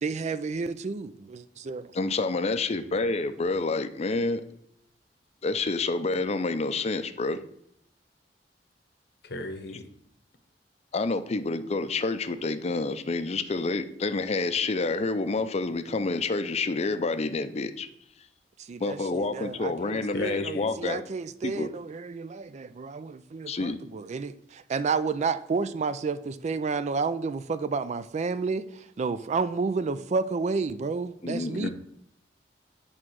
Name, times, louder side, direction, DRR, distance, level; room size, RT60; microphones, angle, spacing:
voice 1, 0.0-1.9 18.7-31.7, right 4 dB, 40° right, 0.4 m, -31 dB
voice 2, 1.9-4.4 5.4-7.4 10.9-17.9 18.8-21.0 21.4-21.7 23.5-23.8 31.2-31.7, left 3 dB, 35° left, 0.5 m, -28 dB
voice 3, 9.2-9.9 20.1-20.7 31.6-31.7, left 2 dB, 65° left, 0.9 m, -36 dB
8.7 x 3.7 x 6.2 m
head